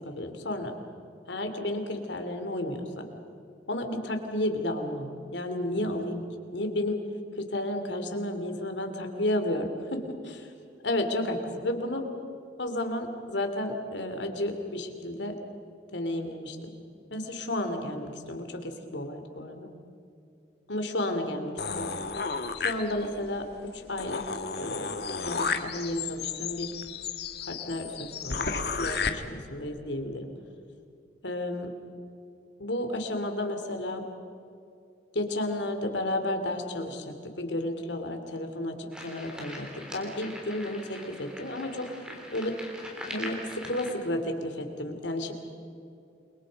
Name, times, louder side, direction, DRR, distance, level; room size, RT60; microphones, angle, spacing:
voice 1, 0.0-0.7 1.3-3.0 3.7-6.2 6.5-7.0 7.4-10.5 10.8-12.1 12.6-15.4 15.9-16.7 17.1-19.7 20.7-21.9 22.6-24.2 24.6-26.8 27.4-30.3 31.2-31.7 32.6-34.0 35.1-41.9 42.3-42.6 43.1-45.3, left 1 dB, 75° left, 5 dB, 3.0 m, -32 dB
sound 1, 21.6-23.3 23.7-23.8 24.0-29.1, left 5 dB, 60° left, 1.5 m, -33 dB
sound 2, 38.9-43.9, left 1 dB, 5° right, 3.6 m, -42 dB
29.0 x 23.0 x 5.3 m, 2.6 s
head